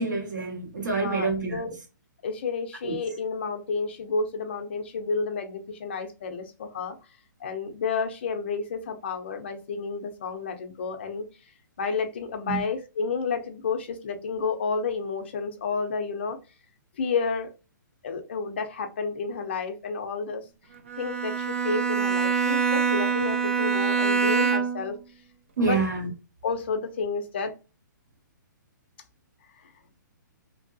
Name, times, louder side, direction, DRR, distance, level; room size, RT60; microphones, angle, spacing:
voice 1, 0.0-1.6 2.8-2.9 12.5-12.6 25.6-26.1, right 4 dB, 65° right, 1.3 m, -27 dB
voice 2, 1.0-1.7 2.2-7.0 7.4-11.3 11.8-16.4 17.0-17.5 18.0-20.4 21.0-25.0 25.6-25.8 26.4-27.5 29.6-29.7, left 4 dB, 35° left, 0.5 m, -30 dB
Bowed string instrument, 20.9-25.0, right 6 dB, 40° right, 0.4 m, -25 dB
2.8 x 2.6 x 2.6 m
hypercardioid pair, 180°, 10 cm